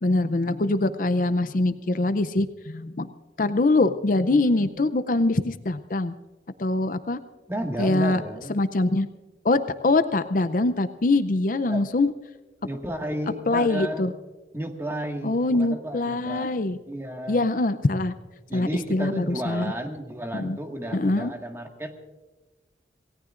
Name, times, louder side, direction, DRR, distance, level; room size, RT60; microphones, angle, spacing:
voice 1, 0.0-3.1 3.4-6.1 6.6-7.2 7.8-8.2 8.5-9.1 9.4-12.1 13.5-14.1 15.2-16.8 17.3-18.1 18.5-19.7 20.4-20.6 20.9-21.3, left 2 dB, 50° left, 11 dB, 0.5 m, -23 dB
voice 2, 7.5-8.6 11.7-11.9 12.6-14.1 14.5-17.4 18.5-21.9, right 1 dB, 15° right, 2 dB, 1.8 m, -32 dB
27.0 x 18.0 x 2.5 m, 1.2 s
head